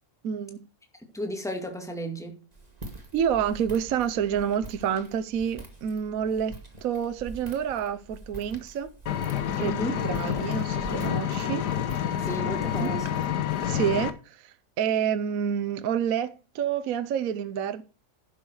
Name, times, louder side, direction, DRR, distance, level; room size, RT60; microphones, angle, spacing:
voice 1, 0.2-0.6 3.1-6.5 6.8-8.9 9.6-11.7 12.7-12.9 13.6-17.8, right 8 dB, 65° right, 1.2 m, -28 dB
voice 2, 1.1-2.4 9.6-10.0 12.2-13.2, equal, ahead, 2.1 m, -33 dB
Walk footsteps, 2.5-13.7, right 2 dB, 25° right, 2.1 m, -45 dB
Engine, 9.1-14.1, left 9 dB, 90° left, 1.6 m, -28 dB
11.0 x 7.2 x 4.8 m
omnidirectional pair, 1.7 m